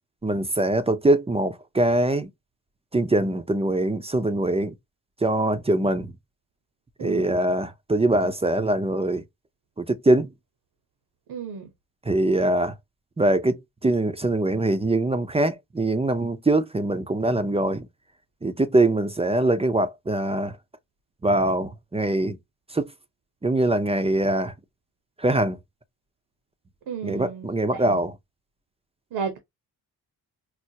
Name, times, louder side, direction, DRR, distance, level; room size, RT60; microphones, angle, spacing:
voice 1, 0.2-2.3 2.9-4.7 5.2-6.1 7.0-9.2 9.8-10.3 12.1-12.7 13.2-17.9 18.4-20.6 21.2-22.4 22.7-22.9 23.4-24.5 25.2-25.6 27.0-28.1, right 2 dB, 15° right, 0.5 m, -23 dB
voice 2, 11.3-11.7 26.9-28.0 29.1-29.4, right 6 dB, 75° right, 1.0 m, -33 dB
4.5 x 2.0 x 2.7 m
cardioid pair, 60°, 38 cm